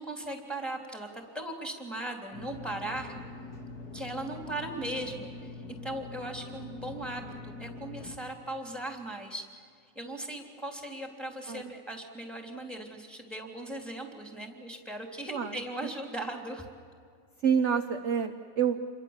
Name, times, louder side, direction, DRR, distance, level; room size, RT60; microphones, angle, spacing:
voice 1, 0.0-3.1 3.9-5.6 5.8-9.4 9.9-16.6, right 1 dB, ahead, 2 dB, 3.2 m, -38 dB
sound 1, 2.3-8.1, left 3 dB, 75° left, 3.6 m, -43 dB
voice 2, 17.4-18.8, right 7 dB, 50° right, 6 dB, 1.2 m, -28 dB
28.5 x 23.5 x 7.4 m, 2.3 s
omnidirectional pair, 1.7 m